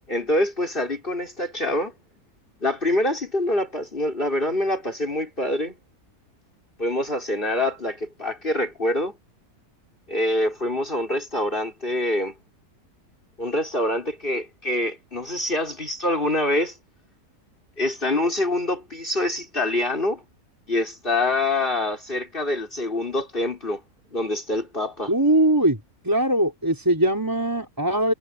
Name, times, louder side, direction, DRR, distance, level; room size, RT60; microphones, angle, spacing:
voice 1, 0.1-1.9 2.6-5.7 6.8-9.2 10.1-12.3 13.4-16.8 17.8-20.2 20.7-23.8 24.1-25.1, left 1 dB, 35° left, 5.7 m, -25 dB
voice 2, 25.1-25.8 26.0-28.1, right 1 dB, 10° right, 4.0 m, -21 dB
omnidirectional pair, 1.7 m